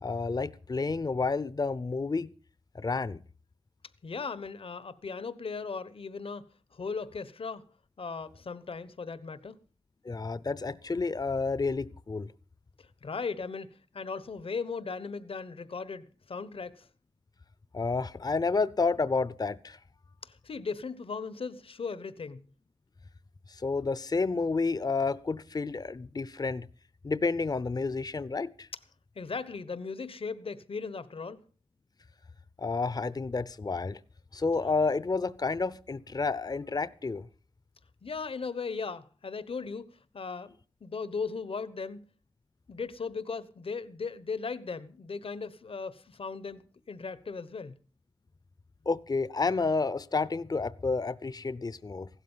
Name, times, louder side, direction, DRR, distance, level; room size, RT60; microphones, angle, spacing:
voice 1, 0.0-2.3 2.7-3.2 10.0-12.3 17.7-19.8 23.5-26.7 27.0-28.7 32.6-34.0 34.3-37.3 48.9-52.1, left 4 dB, 45° left, 0.6 m, -30 dB
voice 2, 4.0-6.4 6.7-7.6 8.0-9.6 12.8-16.9 20.2-22.4 29.1-31.4 38.0-39.9 40.1-40.5 40.8-42.0 42.7-46.6 46.9-47.7, left 4 dB, 75° left, 1.1 m, -37 dB
16.0 x 12.5 x 5.6 m
cardioid pair, 50°, 10 cm